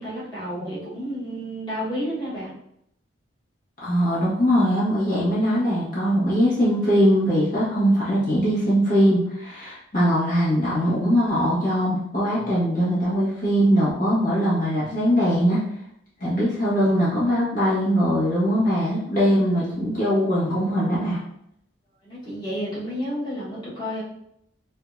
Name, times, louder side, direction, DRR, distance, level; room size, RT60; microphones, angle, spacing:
voice 1, 0.0-2.5 22.0-24.0, equal, 25° left, -8 dB, 1.4 m, -31 dB
voice 2, 3.8-15.6 16.2-21.2, equal, 45° left, -9 dB, 1.4 m, -21 dB
5.2 x 2.4 x 2.7 m, 0.76 s
head